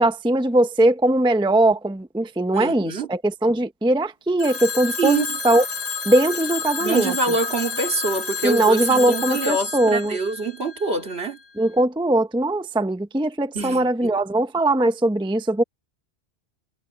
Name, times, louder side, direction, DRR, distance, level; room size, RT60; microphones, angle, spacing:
voice 1, 0.0-5.6 6.0-7.1 8.4-10.2 11.6-15.6, right 1 dB, 5° right, 0.7 m, -20 dB
voice 2, 2.5-3.1 5.0-5.3 6.8-11.4 13.5-14.2, right 3 dB, 60° right, 2.6 m, -25 dB
Telephone, 4.4-11.2, left 5 dB, 35° left, 1.5 m, -30 dB
omnidirectional pair, 1.2 m